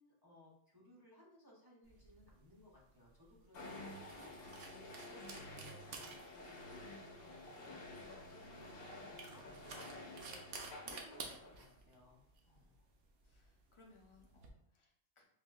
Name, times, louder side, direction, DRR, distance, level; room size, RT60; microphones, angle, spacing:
voice 1, 0.0-12.3 12.5-12.7, left 1 dB, 25° right, -6 dB, 0.5 m, -63 dB
sound 1, 1.9-14.5, right 4 dB, 65° right, 0.8 m, -54 dB
sound 2, 3.5-11.8, left 1 dB, 60° left, 0.9 m, -51 dB
voice 2, 4.7-5.1 12.4-12.9 13.2-15.2, left 2 dB, 35° left, -1 dB, 0.5 m, -66 dB
sound 3, 6.1-12.9, right 2 dB, 80° right, 1.3 m, -72 dB
4.2 x 2.6 x 2.3 m, 0.71 s
omnidirectional pair, 1.2 m